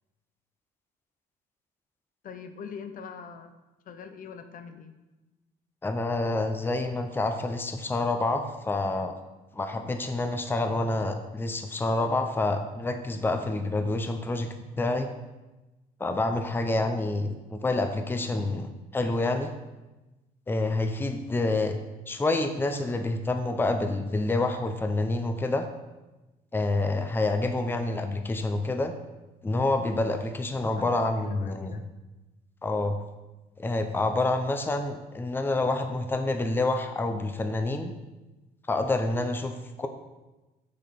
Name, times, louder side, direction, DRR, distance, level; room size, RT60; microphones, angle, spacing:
voice 1, 2.2-3.5 3.9-4.9 30.8-31.8, left 6 dB, 55° left, 8 dB, 0.6 m, -42 dB
voice 2, 5.8-9.1 9.6-15.1 16.0-19.5 20.5-21.8 22.1-25.7 26.5-28.9 29.4-31.7 32.6-33.0 33.6-37.9 38.7-39.9, left 2 dB, 10° left, 7 dB, 0.6 m, -28 dB
6.5 x 6.4 x 4.1 m, 1.1 s
cardioid pair, 110°, 17 cm